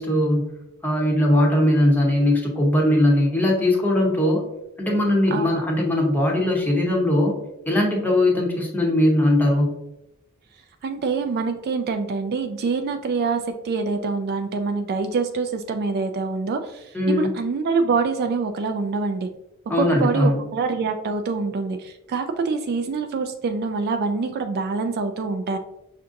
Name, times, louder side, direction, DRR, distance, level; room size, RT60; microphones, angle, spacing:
voice 1, 0.0-4.4 4.8-7.4 7.7-9.8 16.9-17.3 19.7-20.4, left 1 dB, 10° left, -1 dB, 0.7 m, -20 dB
voice 2, 10.8-19.3 19.7-25.6, right 4 dB, 50° right, 6 dB, 0.3 m, -25 dB
5.6 x 2.5 x 2.5 m, 0.88 s
head